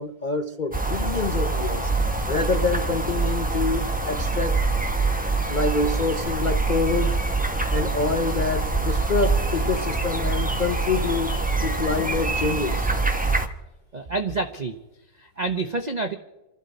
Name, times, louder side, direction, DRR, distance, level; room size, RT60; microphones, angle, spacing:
voice 1, 0.0-1.9 2.3-4.6 5.5-7.2 7.7-11.3 11.6-12.9, left 4 dB, 65° left, 0.4 m, -26 dB
sound 1, 0.7-13.5, right 3 dB, 5° right, 0.7 m, -25 dB
voice 2, 13.9-14.8 15.1-16.2, right 3 dB, 75° right, 0.4 m, -28 dB
28.5 x 12.0 x 4.1 m
omnidirectional pair, 2.0 m